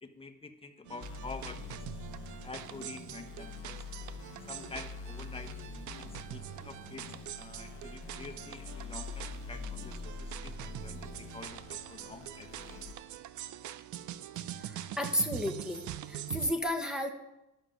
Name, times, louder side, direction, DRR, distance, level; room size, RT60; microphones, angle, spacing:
voice 1, 0.0-2.0 2.4-3.9 4.5-5.6 5.9-12.9, left 3 dB, 20° left, 6 dB, 1.1 m, -48 dB
sound 1, 0.9-16.5, right 12 dB, 75° right, 0.6 m, -44 dB
sound 2, 1.0-12.9, left 5 dB, 45° left, 0.9 m, -45 dB
voice 2, 14.6-15.8 16.1-17.1, left 1 dB, ahead, 1 dB, 1.1 m, -32 dB
11.0 x 6.3 x 5.3 m, 0.92 s
cardioid pair, 90°, 30 cm